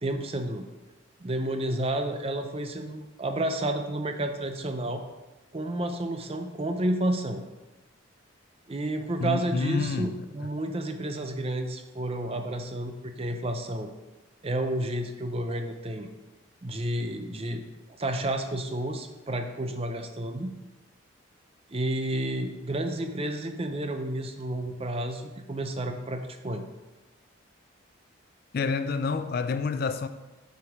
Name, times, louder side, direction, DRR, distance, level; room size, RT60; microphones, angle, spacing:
voice 1, 0.0-0.6 1.2-5.0 5.5-7.4 8.7-13.9 14.4-16.1 16.6-17.6 18.0-20.5 21.7-26.6, right 1 dB, 30° right, 0.5 m, -31 dB
voice 2, 9.2-10.1 28.5-30.1, left 4 dB, 45° left, 0.3 m, -28 dB
6.6 x 4.8 x 5.0 m
head